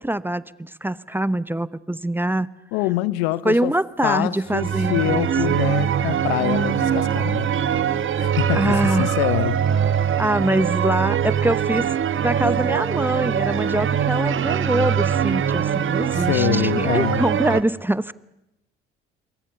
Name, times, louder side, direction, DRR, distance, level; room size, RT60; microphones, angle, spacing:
voice 1, 0.0-2.5 3.4-5.6 8.6-9.1 10.2-11.9 12.2-18.1, right 1 dB, 5° right, 0.9 m, -24 dB
voice 2, 2.7-3.7 4.0-7.5 8.2-9.6 16.1-17.2, left 17 dB, 75° left, 0.9 m, -25 dB
sound 1, 4.5-17.6, right 8 dB, 45° right, 1.3 m, -22 dB
29.0 x 23.0 x 7.0 m
hypercardioid pair, 55°, 30 cm